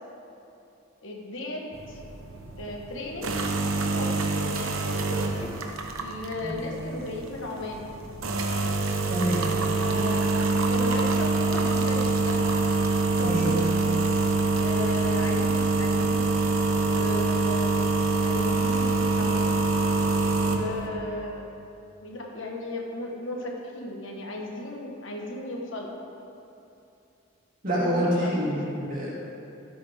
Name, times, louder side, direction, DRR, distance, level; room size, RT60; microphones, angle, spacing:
voice 1, 1.0-2.0 2.6-3.3 3.9-5.5 6.0-7.9 9.8-12.4 13.0-13.8 14.6-16.3 16.7-17.7 18.2-19.4 20.2-21.5 22.0-25.9 27.7-28.6, left 1 dB, 70° left, -1 dB, 1.5 m, -35 dB
sound 1, 1.7-20.9, right 3 dB, 90° right, 1.0 m, -25 dB
voice 2, 9.1-9.4 13.2-13.5 27.6-29.1, equal, 40° right, -7 dB, 2.7 m, -27 dB
15.5 x 8.6 x 3.6 m, 2.7 s
head